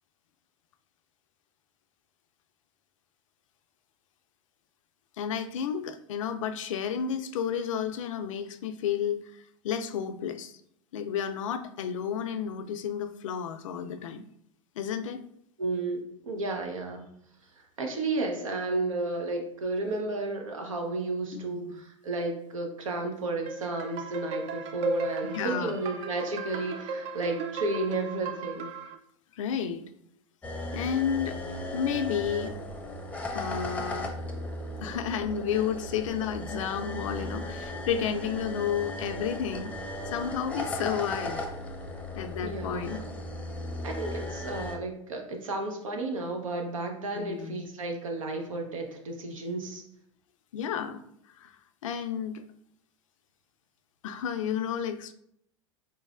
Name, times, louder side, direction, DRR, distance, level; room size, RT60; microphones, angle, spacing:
voice 1, 5.2-10.5 10.9-14.2 14.8-15.2 21.3-21.8 25.2-25.8 29.4-29.9 30.7-31.4 31.7-32.5 33.3-34.1 34.8-41.4 42.2-43.0 47.1-47.7 50.5-51.0 51.4-51.5 51.8-52.4 54.0-55.1, left 8 dB, 75° left, 9 dB, 0.4 m, -32 dB
voice 2, 15.6-17.1 17.6-28.7 42.4-43.0 43.8-49.8, right 2 dB, 85° right, 3 dB, 0.8 m, -32 dB
sound 1, 23.5-28.9, right 3 dB, 40° right, 0.5 m, -35 dB
sound 2, 30.4-44.8, left 1 dB, 10° left, 0.6 m, -36 dB
4.0 x 3.1 x 2.4 m, 0.71 s
hypercardioid pair, 100°, 17 cm